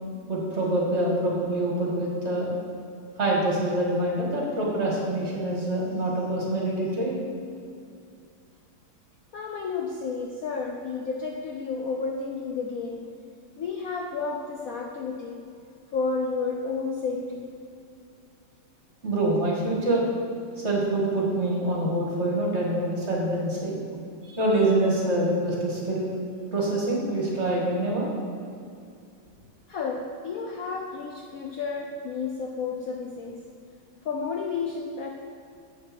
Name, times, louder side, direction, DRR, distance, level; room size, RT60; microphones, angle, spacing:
voice 1, 0.3-2.5 3.2-7.1 19.0-20.0 20.6-23.7 24.3-26.1 26.5-28.1, right 1 dB, 35° right, -3 dB, 2.0 m, -25 dB
voice 2, 9.3-13.1 13.6-15.4 15.9-17.5 29.7-33.4 34.0-35.1, left 4 dB, 85° left, 1 dB, 0.7 m, -31 dB
7.7 x 7.2 x 6.1 m, 2.4 s
omnidirectional pair, 2.4 m